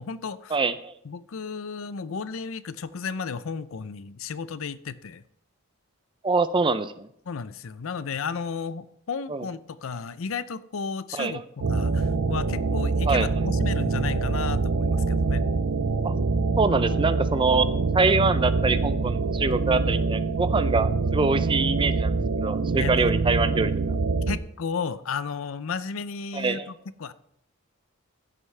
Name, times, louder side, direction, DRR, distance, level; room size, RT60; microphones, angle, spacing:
voice 1, 0.0-0.6 1.0-5.2 7.3-15.4 22.7-23.1 24.3-26.7 27.0-27.1, left 5 dB, 65° left, 15 dB, 0.5 m, -33 dB
voice 2, 0.5-0.9 6.2-7.1 9.3-9.5 11.1-11.4 13.1-13.3 16.0-16.1 16.6-17.7 17.9-23.7 26.3-26.7, right 3 dB, 25° right, 13 dB, 0.5 m, -24 dB
sound 1, 11.6-24.4, right 3 dB, 80° right, 0.6 m, -25 dB
15.0 x 8.1 x 3.3 m, 0.73 s
head